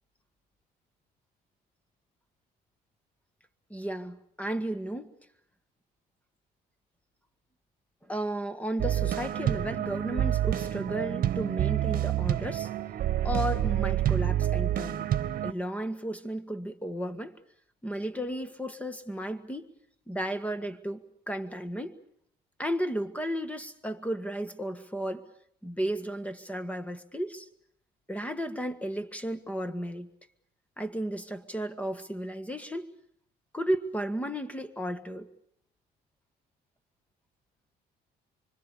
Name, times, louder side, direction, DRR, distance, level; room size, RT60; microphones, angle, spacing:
voice 1, 3.7-5.1 8.1-12.7 13.2-15.1 15.4-17.4 17.8-19.7 20.1-22.0 22.6-25.2 25.6-27.5 28.1-30.1 30.8-32.9 33.5-35.3, right 1 dB, 10° left, 1.7 m, -34 dB
sound 1, 8.8-15.5, right 12 dB, 55° right, 1.4 m, -28 dB
25.5 x 25.0 x 6.9 m
cardioid pair, 110°, 17 cm